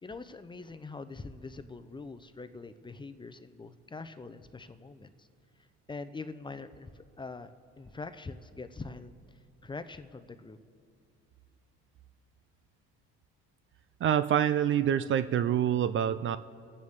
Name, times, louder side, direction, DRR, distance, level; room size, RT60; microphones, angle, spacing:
voice 1, 0.0-5.3 5.9-9.2 9.6-10.6, left 3 dB, 15° left, 10 dB, 0.7 m, -43 dB
voice 2, 14.0-16.4, right 10 dB, 40° right, 13 dB, 0.5 m, -26 dB
27.0 x 9.2 x 3.7 m, 2.2 s
cardioid pair, 100°, 30 cm